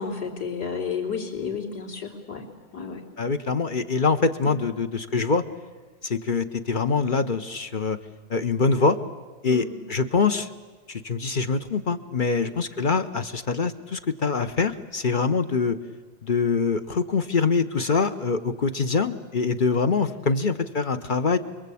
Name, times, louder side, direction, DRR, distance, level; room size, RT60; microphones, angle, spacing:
voice 1, 0.0-3.0 4.4-4.6 9.5-9.8 12.3-12.6, left 6 dB, 55° left, -1 dB, 3.9 m, -32 dB
voice 2, 3.2-5.4 6.0-8.0 8.3-9.0 9.4-10.5 10.9-15.8 16.2-21.4, left 4 dB, 35° left, 10 dB, 0.9 m, -24 dB
29.5 x 22.0 x 8.6 m, 1.4 s
omnidirectional pair, 2.0 m